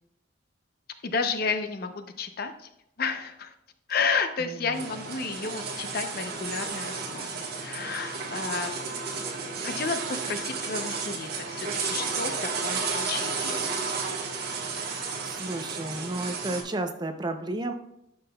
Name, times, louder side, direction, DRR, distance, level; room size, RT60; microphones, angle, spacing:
voice 1, 1.0-2.7 3.0-3.5 3.9-8.7 9.6-13.8, left 5 dB, 50° left, 8 dB, 0.6 m, -32 dB
voice 2, 4.4-4.8 14.7-14.8 15.2-17.7, right 2 dB, 20° right, 7 dB, 0.5 m, -32 dB
sound 1, 4.7-16.6, right 4 dB, 55° right, 1.2 m, -32 dB
10.5 x 5.5 x 2.3 m, 0.81 s
head